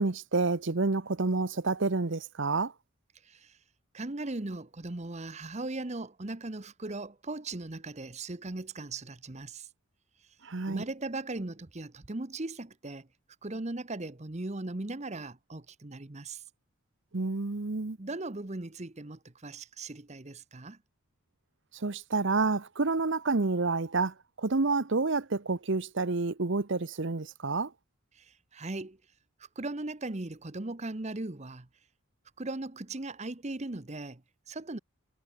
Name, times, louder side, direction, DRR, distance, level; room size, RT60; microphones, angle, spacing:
voice 1, 0.0-2.7 10.4-10.8 17.1-18.0 21.8-27.7, right 3 dB, 55° right, 0.9 m, -29 dB
voice 2, 3.2-3.6 3.9-9.7 10.7-13.1 13.4-16.4 18.0-20.8 28.1-29.0 29.6-31.7 32.4-34.8, right 2 dB, 30° right, 1.0 m, -38 dB
head